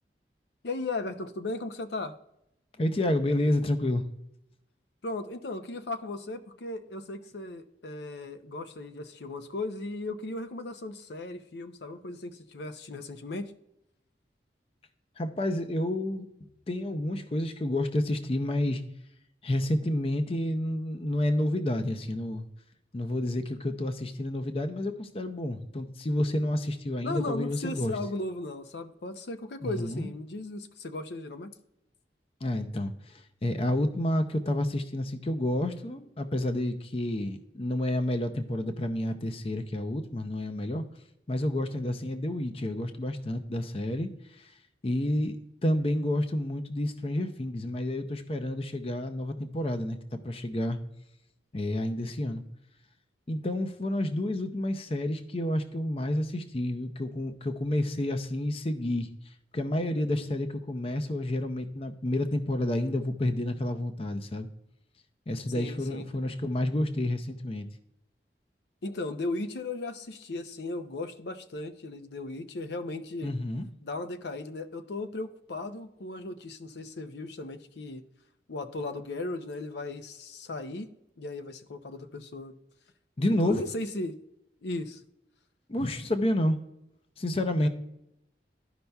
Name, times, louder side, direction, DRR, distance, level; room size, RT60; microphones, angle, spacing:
voice 1, 0.6-2.1 5.0-13.5 27.0-31.5 65.5-66.3 68.8-73.3 73.8-78.0 78.5-80.9 81.2-82.5 83.4-84.1 84.6-85.0 87.6-87.7, left 2 dB, 75° left, 9 dB, 0.6 m, -36 dB
voice 2, 2.8-4.0 15.2-16.3 16.7-18.8 19.4-22.5 22.9-27.9 29.6-30.1 32.4-40.8 41.3-44.5 44.8-45.4 45.6-50.8 51.5-52.4 53.3-59.1 59.5-64.5 65.3-67.7 73.2-73.7 83.2-83.6 85.7-86.6 87.2-87.7, left 1 dB, 30° left, 8 dB, 0.5 m, -29 dB
13.0 x 5.4 x 2.3 m, 0.81 s
head